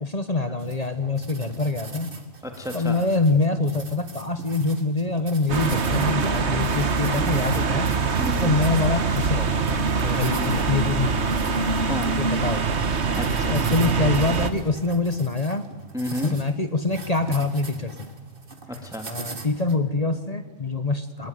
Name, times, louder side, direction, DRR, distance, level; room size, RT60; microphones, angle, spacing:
voice 1, 0.0-2.1 2.7-7.9 8.4-11.1 12.2-12.8 13.5-15.6 16.2-18.1 19.1-21.3, left 3 dB, 35° left, 9 dB, 1.3 m, -25 dB
sound 1, 0.6-19.8, right 4 dB, 45° right, 2.1 m, -42 dB
voice 2, 2.4-3.0 8.2-8.6 10.4-10.5 11.9-12.1 13.2-13.6 15.9-16.4 18.7-19.1, left 1 dB, 5° right, 4 dB, 2.0 m, -31 dB
sound 2, 5.5-14.5, right 5 dB, 65° right, 1.6 m, -24 dB
22.5 x 20.0 x 9.4 m, 1.3 s
omnidirectional pair, 1.3 m